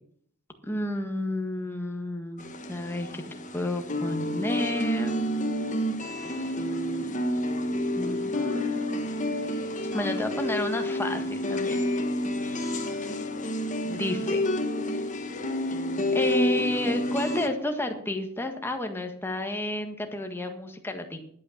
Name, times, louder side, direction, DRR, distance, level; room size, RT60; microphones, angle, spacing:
voice 1, 0.6-3.2 3.5-5.3 6.1-6.4 8.0-9.0 9.9-11.8 13.8-14.4 16.1-21.2, left 1 dB, 10° left, 4 dB, 1.7 m, -31 dB
sound 1, 2.4-17.5, left 1 dB, 35° left, 1.4 m, -29 dB
11.5 x 8.7 x 7.2 m, 0.64 s
head